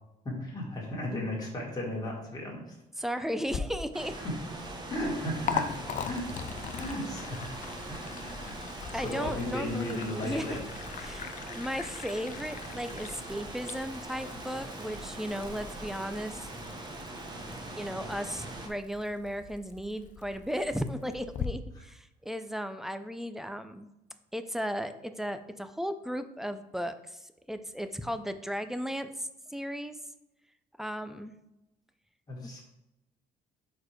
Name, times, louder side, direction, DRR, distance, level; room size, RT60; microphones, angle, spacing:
voice 1, 0.2-2.6 2.9-3.0 4.2-4.4 4.9-5.7 6.0-6.3 6.7-7.6 7.9-8.6 8.9-10.6 11.4-11.5 32.3-32.6, left 1 dB, 25° left, -4 dB, 2.1 m, -35 dB
voice 2, 3.0-4.1 8.9-10.6 11.0-16.5 17.8-23.9 24.3-30.0 30.8-31.3 32.4-32.5, equal, ahead, 9 dB, 0.4 m, -35 dB
Liquid, 3.4-21.5, left 7 dB, 45° left, 0.6 m, -42 dB
sound 1, 3.9-18.7, right 2 dB, 25° right, 1.1 m, -42 dB
4.6 x 4.5 x 4.9 m, 0.90 s
cardioid pair, 110°, 17 cm